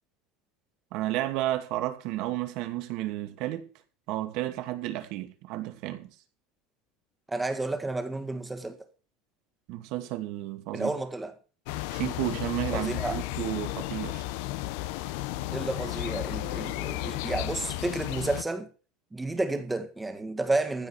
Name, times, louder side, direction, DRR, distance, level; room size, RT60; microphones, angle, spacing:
voice 1, 0.9-3.7 4.1-6.1 9.7-10.9 11.9-14.3, right 15 dB, 60° right, 2.5 m, -32 dB
voice 2, 7.3-8.8 10.7-11.3 12.7-13.2 15.5-18.7 19.1-20.9, right 2 dB, 10° right, 1.8 m, -31 dB
sound 1, 11.7-18.4, left 16 dB, 75° left, 0.8 m, -33 dB
15.0 x 5.3 x 8.2 m
cardioid pair, 150°, 0 cm